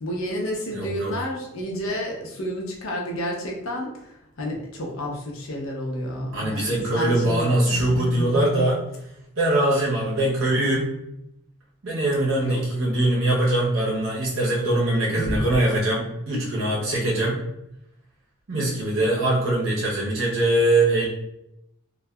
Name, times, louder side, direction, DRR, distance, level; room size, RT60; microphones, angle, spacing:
voice 1, 0.0-8.7 10.2-10.3 12.4-12.6 15.1-15.4, equal, 70° left, -1 dB, 0.6 m, -30 dB
voice 2, 0.7-1.1 6.3-8.8 9.4-10.9 11.8-17.4 18.5-21.1, right 1 dB, 65° right, -4 dB, 0.8 m, -22 dB
2.6 x 2.2 x 2.2 m, 0.82 s
head